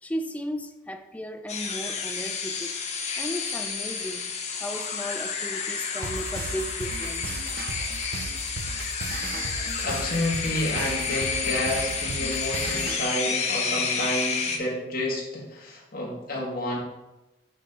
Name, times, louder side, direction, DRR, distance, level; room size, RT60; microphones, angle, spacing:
voice 1, 0.0-2.7 3.2-4.2 4.6-7.5, equal, 10° left, 0.4 m, -35 dB
sound 1, 1.5-14.6, left 5 dB, 40° left, 0.8 m, -30 dB
sound 2, 6.0-13.0, right 3 dB, 55° right, 0.6 m, -35 dB
voice 2, 9.8-16.8, left 1 dB, 55° left, 1.7 m, -30 dB
8.5 x 3.4 x 3.9 m
head